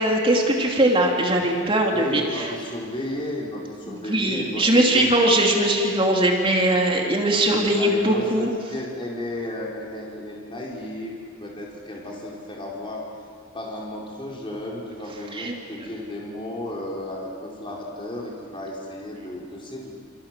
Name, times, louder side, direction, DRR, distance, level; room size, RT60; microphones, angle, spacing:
voice 1, 0.0-2.5 3.9-8.5 15.3-15.5, right 1 dB, 25° right, 0 dB, 2.8 m, -20 dB
voice 2, 1.8-5.1 7.5-13.0 13.5-19.9, left 1 dB, 25° left, -3 dB, 4.2 m, -33 dB
28.5 x 27.5 x 7.5 m, 2.2 s
head